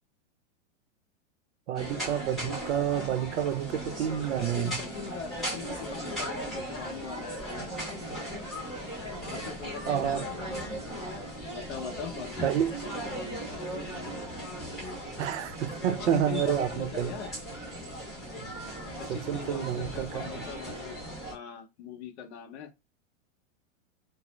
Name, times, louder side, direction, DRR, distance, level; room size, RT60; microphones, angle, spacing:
sound 1, 1.7-21.3, equal, ahead, 0.4 m, -37 dB
voice 1, 1.7-4.8 9.9-10.2 12.4-12.7 15.2-17.1 19.1-20.4, right 10 dB, 60° right, 0.6 m, -29 dB
voice 2, 4.4-7.4 9.3-10.5 11.5-12.5 15.9-17.3 18.9-21.0 21.3-22.7, left 7 dB, 55° left, 0.8 m, -41 dB
2.5 x 2.0 x 3.0 m
supercardioid pair, 165°, 38 cm